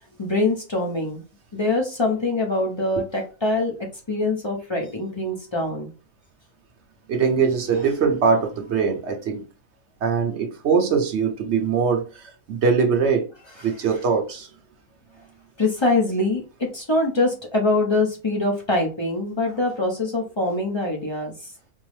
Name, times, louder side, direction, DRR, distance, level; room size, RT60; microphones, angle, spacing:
voice 1, 0.2-1.2 1.5-5.9 13.6-14.0 15.6-21.5, left 2 dB, 30° left, 0.5 m, -24 dB
voice 2, 7.1-9.4 10.0-13.3 13.6-14.5, right 5 dB, 60° right, 0.8 m, -22 dB
4.4 x 2.0 x 3.1 m
omnidirectional pair, 1.5 m